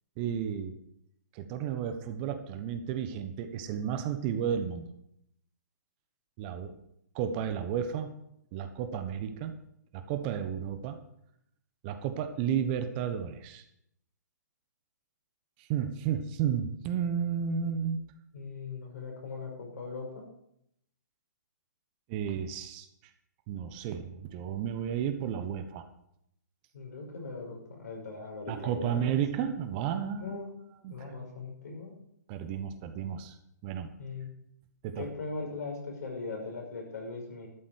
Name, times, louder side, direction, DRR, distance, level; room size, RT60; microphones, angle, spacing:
voice 1, 0.2-0.8 1.3-4.9 6.4-6.7 7.1-8.1 8.5-9.5 9.9-11.0 11.8-13.6 15.6-18.0 22.1-22.9 23.5-25.8 28.5-30.3 30.8-31.1 32.3-33.4 33.6-33.9 34.8-35.0, right 8 dB, 30° right, 8 dB, 1.1 m, -32 dB
voice 2, 18.3-20.2 26.7-29.1 30.2-30.6 30.9-32.0 34.0-34.3 35.0-37.5, left 3 dB, 65° left, 0 dB, 5.9 m, -39 dB
12.5 x 7.7 x 6.5 m, 0.75 s
hypercardioid pair, 135°, 10 cm